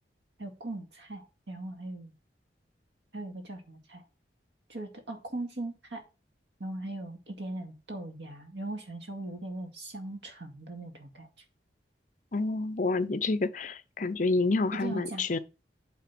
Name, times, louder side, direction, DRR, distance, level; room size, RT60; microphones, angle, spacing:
voice 1, 0.4-2.1 3.1-4.0 4.7-6.0 6.6-11.3 14.7-15.2, right 2 dB, 85° right, 2.2 m, -39 dB
voice 2, 12.3-15.4, left 3 dB, 45° left, 0.6 m, -28 dB
8.6 x 3.8 x 6.0 m
head